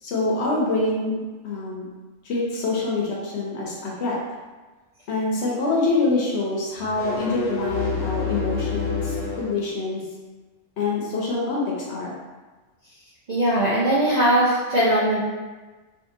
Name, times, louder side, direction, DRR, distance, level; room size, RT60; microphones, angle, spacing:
voice 1, 0.0-1.9 2.2-4.1 5.1-10.0 10.8-12.2, left 3 dB, 65° left, -4 dB, 0.8 m, -25 dB
sound 1, 6.8-9.6, left 4 dB, 90° left, 1.1 m, -28 dB
voice 2, 13.3-15.2, right 1 dB, 50° right, -10 dB, 0.5 m, -20 dB
2.6 x 2.5 x 2.5 m, 1.3 s
omnidirectional pair, 1.3 m